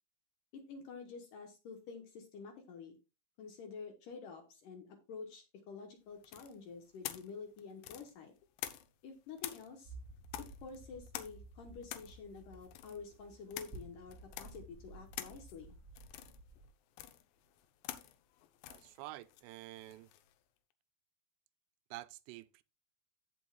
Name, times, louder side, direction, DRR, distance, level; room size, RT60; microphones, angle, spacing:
voice 1, 0.5-3.0 3.4-8.3 9.0-9.9 10.6-15.8, left 5 dB, 70° left, 2.2 m, -49 dB
sound 1, 6.2-9.1 9.4-20.3, left 13 dB, 90° left, 3.0 m, -48 dB
sound 2, 9.8-16.7, right 2 dB, 10° left, 0.9 m, -54 dB
voice 2, 18.7-20.1 21.9-22.6, right 17 dB, 85° right, 2.7 m, -49 dB
15.5 x 5.3 x 2.3 m
omnidirectional pair, 4.8 m